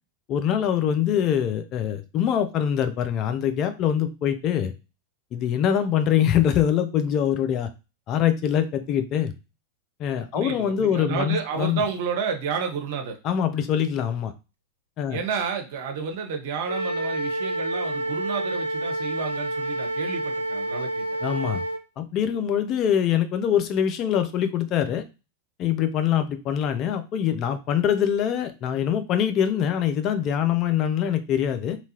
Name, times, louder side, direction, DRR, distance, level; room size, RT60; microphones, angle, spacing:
voice 1, 0.3-4.7 5.3-7.7 8.1-9.3 10.0-11.8 13.2-14.3 15.0-15.2 21.2-21.6 22.0-25.0 25.6-31.8, left 9 dB, 40° left, 9 dB, 0.4 m, -24 dB
voice 2, 10.3-13.2 15.1-21.1, right 6 dB, 55° right, 4 dB, 0.7 m, -30 dB
Wind instrument woodwind instrument, 16.7-21.8, right 1 dB, 85° right, 0.4 m, -28 dB
2.8 x 2.3 x 2.7 m, 0.29 s
figure-of-eight pair, 90°, 0 cm